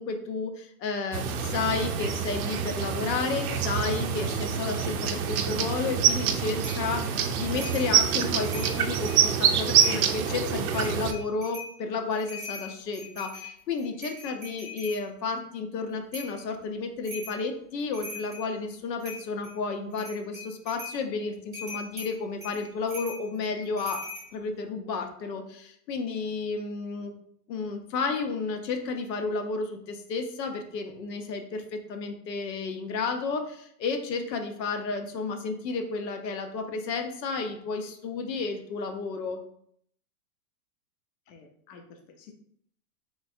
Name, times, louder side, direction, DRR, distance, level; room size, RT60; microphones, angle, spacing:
voice 1, 0.0-24.1 24.3-27.1 27.5-39.4, left 4 dB, 85° left, 5 dB, 0.8 m, -32 dB
sound 1, 1.1-11.1, right 8 dB, 60° right, 0.5 m, -26 dB
sound 2, 6.6-6.9 7.5-7.9 8.3-9.2 9.7-10.3 10.7-11.7 12.1-15.0 16.1-16.4 17.0-17.4 17.8-18.5 19.0-19.5 19.9-21.0 21.5-24.3, left 2 dB, 5° right, 0.7 m, -41 dB
voice 2, 41.3-42.3, left 5 dB, 55° left, 2 dB, 0.6 m, -51 dB
3.2 x 3.1 x 2.6 m, 0.65 s
supercardioid pair, 170°, 49 cm